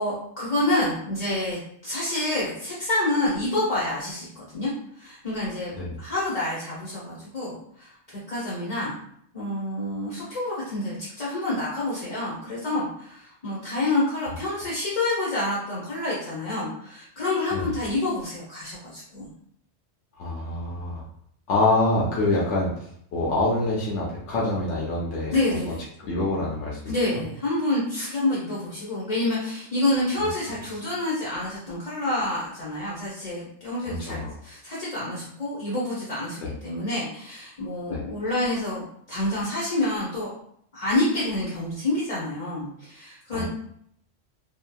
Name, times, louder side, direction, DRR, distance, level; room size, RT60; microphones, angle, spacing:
voice 1, 0.0-4.7 5.0-7.9 8.3-8.9 9.3-19.3 25.3-25.8 26.9-40.3 40.7-43.4, left 2 dB, 35° left, -8 dB, 0.8 m, -28 dB
voice 2, 20.2-21.0 21.5-22.7 23.1-25.3 26.0-26.9 33.8-34.3 36.4-36.5 37.9-38.0 43.3-43.4, left 2 dB, 80° left, -4 dB, 0.9 m, -25 dB
2.8 x 2.3 x 2.2 m, 0.68 s
omnidirectional pair, 1.2 m